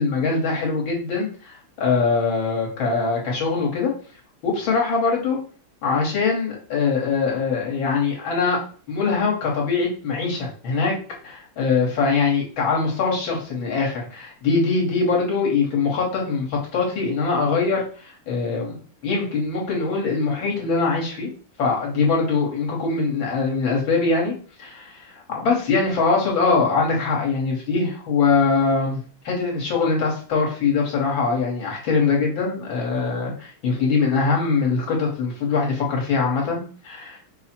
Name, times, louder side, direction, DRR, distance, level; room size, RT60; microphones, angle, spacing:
voice 1, 0.0-3.9 4.4-5.4 5.8-8.6 8.9-10.9 11.2-18.8 19.0-21.3 21.6-24.3 24.6-37.2, left 4 dB, 65° left, -2 dB, 1.9 m, -22 dB
5.5 x 2.1 x 4.3 m, 0.42 s
omnidirectional pair, 2.4 m